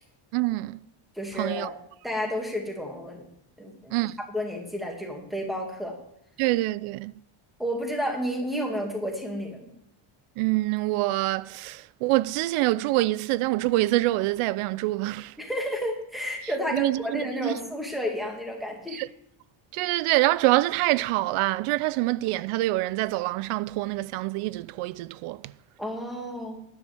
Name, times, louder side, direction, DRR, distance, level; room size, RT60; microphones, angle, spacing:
voice 1, 0.3-0.8 1.4-1.7 3.9-4.2 6.4-7.1 10.4-15.3 16.7-17.5 18.9-19.1 19.7-25.4, right 18 dB, 80° right, 0.5 m, -25 dB
voice 2, 1.2-1.8 2.0-3.3 3.6-6.0 7.6-9.7 15.4-19.0 25.8-26.6, equal, ahead, 2.0 m, -31 dB
13.0 x 10.5 x 3.4 m
cardioid pair, 175°, 50 cm